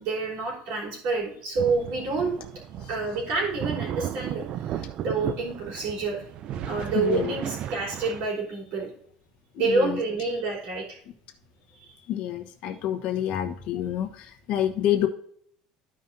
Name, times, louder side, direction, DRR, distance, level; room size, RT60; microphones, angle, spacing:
voice 1, 0.0-2.3 2.9-6.2 6.7-8.9 9.6-11.0 11.8-11.9, right 3 dB, 60° right, -4 dB, 3.6 m, -28 dB
sound 1, 1.6-8.3, right 10 dB, 40° right, 0.4 m, -35 dB
voice 2, 6.9-7.3 9.5-10.0 12.1-15.1, left 11 dB, 50° left, 5 dB, 1.1 m, -28 dB
13.5 x 5.3 x 2.7 m, 0.65 s
cardioid pair, 175°, 2 cm